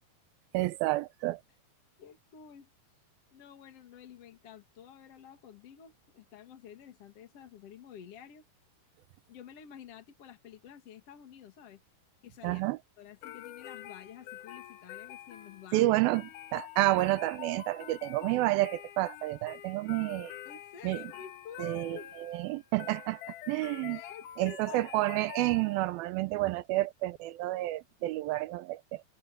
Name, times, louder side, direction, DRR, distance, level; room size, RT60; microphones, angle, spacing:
voice 1, 0.5-1.4 12.4-12.8 15.7-20.3 20.8-21.0 21.6-23.2 23.5-24.0 24.4-29.0, right 18 dB, 80° right, 2.4 m, -30 dB
voice 2, 2.0-2.7 3.3-8.4 9.3-11.8 12.2-12.6 13.0-15.9 20.5-22.1 23.9-24.9, left 9 dB, 45° left, 2.7 m, -50 dB
sound 1, 13.2-26.0, left 12 dB, 65° left, 2.6 m, -47 dB
open air
omnidirectional pair, 4.4 m